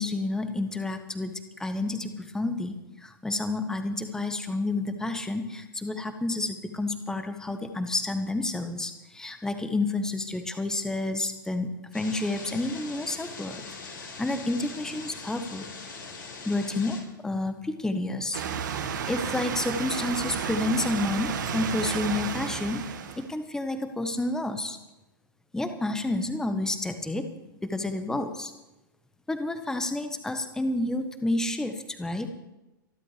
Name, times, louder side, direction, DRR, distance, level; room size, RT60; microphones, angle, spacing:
voice 1, 0.0-2.7 3.0-11.7 11.9-13.6 13.9-15.7 16.4-18.4 19.1-22.8 23.2-24.8 25.5-27.3 27.6-28.5 29.3-32.3, left 2 dB, 5° left, 8 dB, 1.2 m, -30 dB
sound 1, 11.9-17.0, left 4 dB, 70° left, 4.6 m, -42 dB
sound 2, 18.3-23.3, right 7 dB, 60° right, 1.7 m, -32 dB
26.5 x 11.5 x 3.3 m, 1.0 s
figure-of-eight pair, 100°, 12 cm